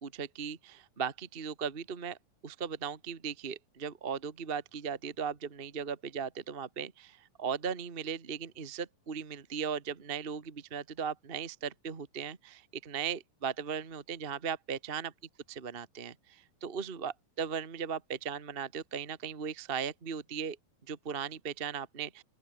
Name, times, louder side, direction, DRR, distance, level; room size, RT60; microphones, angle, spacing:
voice 1, 0.0-2.2 2.4-15.1 15.5-20.6 20.9-22.2, right 7 dB, 55° right, 0.6 m, -37 dB
open air
omnidirectional pair, 4.2 m